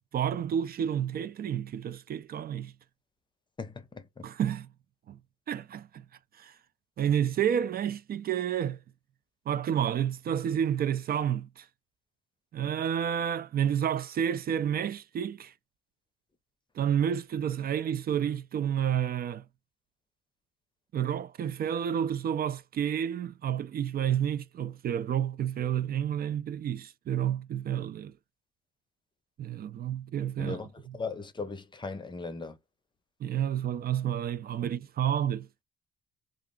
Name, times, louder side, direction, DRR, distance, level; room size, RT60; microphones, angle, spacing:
voice 1, 0.1-2.7 4.2-4.7 5.1-5.2 5.5-6.0 6.4-6.5 7.0-8.8 9.5-11.7 12.5-15.5 16.8-19.4 20.9-28.1 29.4-31.0 33.2-35.5, right 9 dB, 50° right, 0.4 m, -30 dB
voice 2, 3.6-4.3 30.4-30.7 30.9-32.6, left 4 dB, 25° left, 0.6 m, -38 dB
2.3 x 2.0 x 3.6 m
cardioid pair, 90°, 20 cm